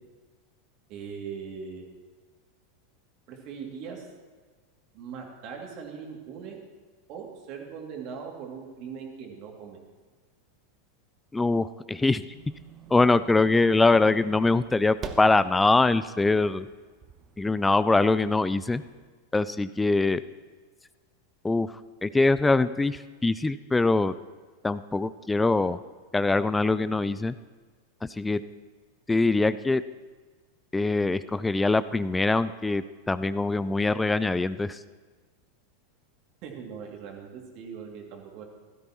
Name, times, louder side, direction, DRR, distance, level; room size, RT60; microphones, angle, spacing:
voice 1, 0.9-1.8 3.3-4.1 4.9-6.6 7.1-9.8 36.4-38.4, right 6 dB, 45° right, 1 dB, 2.6 m, -40 dB
voice 2, 11.3-12.2 12.9-16.7 17.4-18.8 19.3-20.2 21.4-21.7 22.0-24.1 24.6-25.8 26.1-27.3 28.2-28.4 29.1-29.8 30.7-34.8, left 3 dB, 10° left, 15 dB, 0.3 m, -23 dB
sound 1, 12.3-19.0, right 6 dB, 30° right, 1.0 m, -47 dB
16.0 x 13.0 x 3.0 m, 1.4 s
figure-of-eight pair, 90°, 0 cm